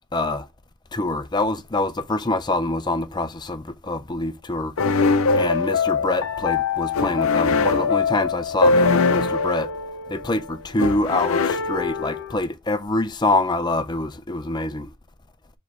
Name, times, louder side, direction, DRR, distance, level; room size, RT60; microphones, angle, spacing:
voice 1, 0.1-0.5 0.9-4.7 5.4-9.7 10.1-14.9, left 2 dB, 20° left, 0.5 m, -25 dB
sound 1, 4.8-12.5, left 4 dB, 80° left, 0.6 m, -22 dB
5.1 x 4.0 x 4.6 m
head